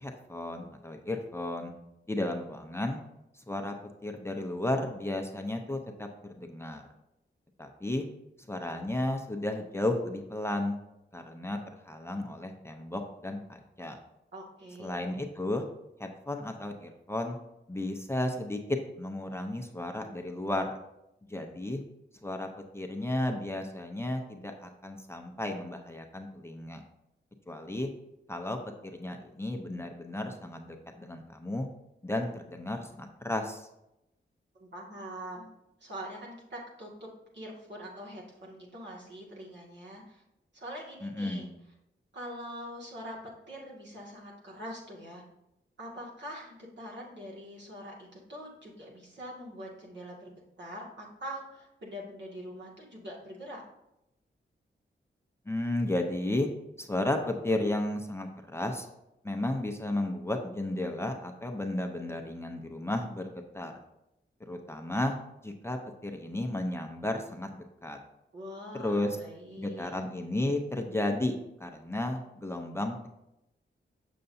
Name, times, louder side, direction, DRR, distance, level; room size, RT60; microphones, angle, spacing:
voice 1, 0.0-1.7 2.1-3.0 3.3-3.7 4.0-6.8 7.6-8.1 8.5-10.8 11.1-11.6 11.8-14.0 14.8-15.6 16.0-17.4 17.7-18.6 19.0-20.7 21.3-21.8 22.2-22.5 22.7-26.8 27.5-27.9 28.3-28.6 28.9-31.7 32.0-33.7 41.0-41.5 55.5-56.5 56.8-58.9 59.2-63.7 64.5-65.1 65.4-68.0 68.7-69.2 69.6-73.1, left 1 dB, 15° left, 3 dB, 0.7 m, -33 dB
voice 2, 14.3-15.0 34.5-35.5 35.8-37.1 37.3-40.2 40.5-41.5 42.1-43.2 43.5-45.2 45.8-50.3 50.6-53.6 68.3-70.0, equal, 65° right, -3 dB, 2.0 m, -43 dB
6.8 x 6.7 x 2.7 m, 0.87 s
wide cardioid pair, 75°, 20 cm